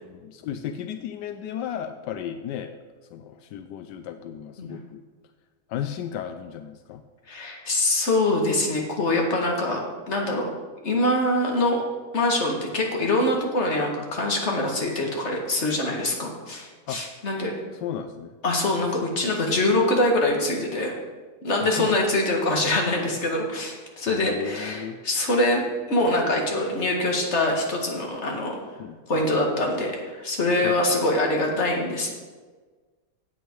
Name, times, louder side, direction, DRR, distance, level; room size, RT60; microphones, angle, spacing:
voice 1, 0.1-2.7 3.1-5.0 5.7-7.0 16.9-17.0 17.8-18.3 21.6-21.9 24.1-25.0 28.8-29.3 30.6-31.0, left 9 dB, 85° left, 8 dB, 1.2 m, -34 dB
voice 2, 7.3-9.8 10.1-10.5 10.8-11.8 12.1-17.5 18.4-20.9 21.4-25.6 25.9-28.6 29.1-32.1, left 1 dB, 40° left, 0 dB, 2.2 m, -24 dB
15.0 x 8.3 x 4.7 m, 1.4 s
omnidirectional pair, 1.9 m